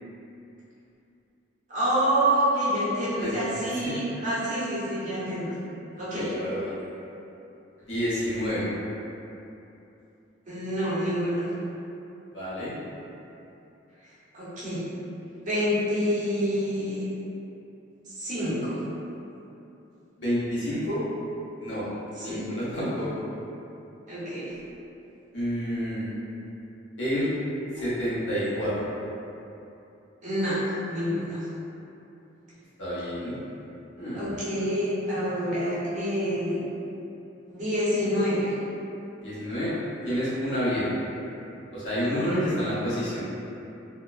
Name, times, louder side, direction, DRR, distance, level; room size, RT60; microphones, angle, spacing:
voice 1, 1.7-5.5 6.0-6.3 10.4-11.5 14.3-14.8 15.4-17.1 18.1-18.8 22.2-22.4 24.1-24.5 27.8-27.9 30.2-30.6 30.9-31.4 34.1-36.6 37.5-38.5 42.1-42.5, equal, 45° right, -12 dB, 0.9 m, -27 dB
voice 2, 3.2-3.9 6.1-6.8 7.8-8.7 12.3-12.7 20.2-21.0 21.6-21.9 22.2-23.1 25.3-26.1 27.0-27.3 27.7-28.9 32.8-33.4 34.0-34.3 39.2-39.7 40.0-40.9 41.7-43.3, equal, 80° left, -10 dB, 0.8 m, -29 dB
2.8 x 2.1 x 2.3 m, 2.9 s
head